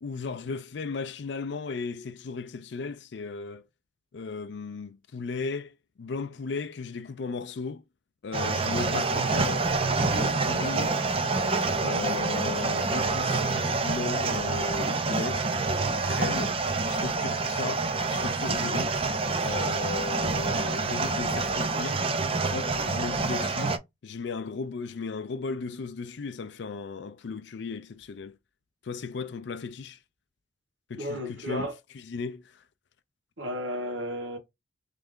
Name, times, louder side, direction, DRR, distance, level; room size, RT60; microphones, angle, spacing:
voice 1, 0.0-3.6 4.1-7.8 8.2-9.7 10.1-10.9 11.8-15.5 16.0-16.6 16.9-19.0 19.4-22.0 22.5-23.8 24.0-28.3 28.8-30.0 30.9-31.7 31.9-32.6, left 4 dB, 65° left, 0.4 m, -36 dB
sound 1, 8.3-23.8, right 3 dB, 30° right, 0.5 m, -27 dB
voice 2, 31.0-31.7 33.4-34.4, equal, 75° right, 1.1 m, -33 dB
3.4 x 3.3 x 3.6 m
head